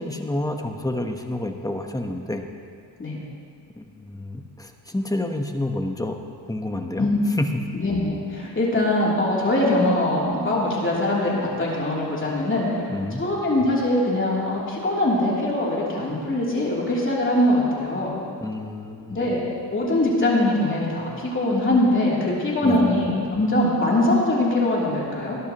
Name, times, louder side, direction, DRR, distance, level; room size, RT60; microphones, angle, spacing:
voice 1, 0.0-2.4 3.8-6.2 6.4-7.1 7.4-7.7 12.9-13.2 18.4-19.3 22.6-22.9, left 1 dB, 10° left, 4 dB, 1.0 m, -29 dB
voice 2, 7.7-12.7 13.2-18.1 19.1-19.4 19.7-25.4, left 1 dB, 30° left, -5 dB, 3.3 m, -22 dB
19.5 x 12.0 x 3.1 m, 2.3 s
cardioid pair, 95°, 42 cm